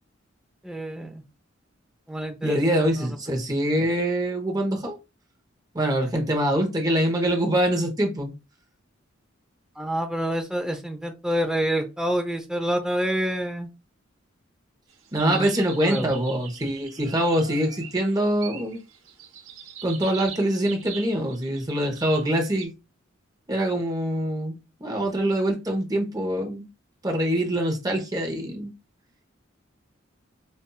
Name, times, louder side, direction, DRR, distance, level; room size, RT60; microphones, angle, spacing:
voice 1, 0.6-1.2 2.1-3.1 9.8-13.7 15.2-15.5 15.8-16.1, equal, 5° right, 0.6 m, -27 dB
voice 2, 2.4-5.0 5.7-8.3 15.1-18.8 19.8-22.7 23.5-26.7 27.0-28.7, right 1 dB, 20° right, 0.9 m, -24 dB
sound 1, 14.9-22.7, right 7 dB, 85° right, 0.9 m, -42 dB
5.3 x 2.5 x 2.3 m
head